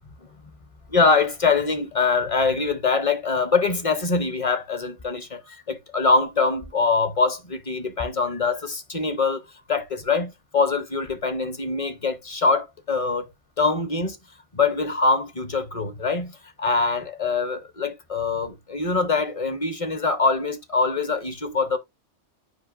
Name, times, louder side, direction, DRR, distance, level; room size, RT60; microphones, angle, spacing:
voice 1, 0.9-5.4 5.7-9.4 9.7-13.3 13.6-14.2 14.5-16.3 16.6-21.8, left 4 dB, 35° left, 0.6 m, -23 dB
8.0 x 5.1 x 2.4 m
omnidirectional pair, 1.3 m